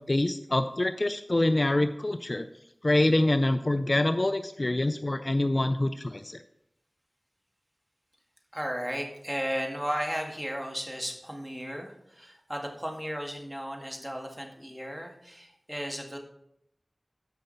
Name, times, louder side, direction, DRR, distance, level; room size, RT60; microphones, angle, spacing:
voice 1, 0.0-2.5 2.8-6.4, left 1 dB, 45° left, 9 dB, 0.5 m, -25 dB
voice 2, 8.5-16.2, equal, 10° right, 1 dB, 2.0 m, -35 dB
13.0 x 5.5 x 4.1 m, 0.76 s
wide cardioid pair, 45°, 0 cm